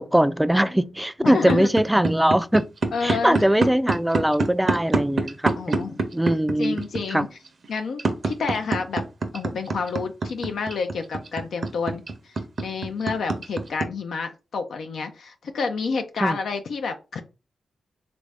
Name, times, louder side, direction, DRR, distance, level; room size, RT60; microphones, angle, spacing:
voice 1, 0.0-2.7 3.0-6.8 7.1-7.3 16.2-16.4, right 1 dB, 5° right, 0.3 m, -21 dB
voice 2, 1.2-1.7 2.9-3.4 5.6-6.0 6.6-7.3 7.7-9.0 9.3-17.2, left 4 dB, 75° left, 0.4 m, -29 dB
sound 1, 1.4-13.8, right 3 dB, 55° right, 0.6 m, -25 dB
3.2 x 2.5 x 3.3 m
supercardioid pair, 50°, 0 cm